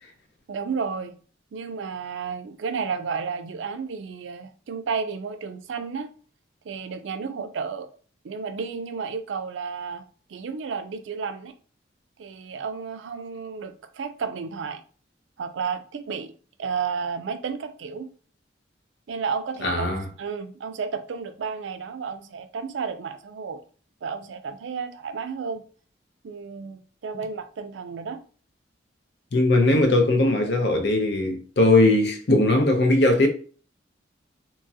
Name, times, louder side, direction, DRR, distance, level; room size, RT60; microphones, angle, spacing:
voice 1, 0.5-1.2 1.5-6.1 6.6-7.9 8.2-11.5 12.2-14.8 15.4-16.3 16.6-18.1 19.1-19.9 20.2-23.6 24.0-25.6 26.2-28.2, right 5 dB, 85° right, 0.4 m, -32 dB
voice 2, 19.6-20.0 29.3-33.3, left 2 dB, 60° left, 0.6 m, -19 dB
2.9 x 2.3 x 2.7 m
head